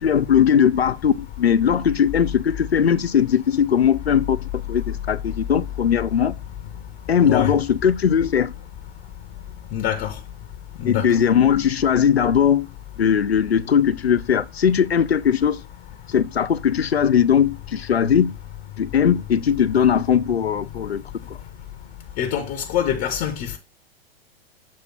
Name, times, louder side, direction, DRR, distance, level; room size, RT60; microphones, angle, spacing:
voice 1, 0.0-6.3 7.1-8.5 10.8-12.7 13.0-15.6 16.1-18.3 18.8-21.0 21.3-21.4, left 8 dB, 90° left, 0.5 m, -19 dB
voice 2, 9.7-10.1 10.8-11.1 22.2-23.6, left 10 dB, 35° left, 0.8 m, -24 dB
7.2 x 2.8 x 5.8 m
figure-of-eight pair, 105°, 30 cm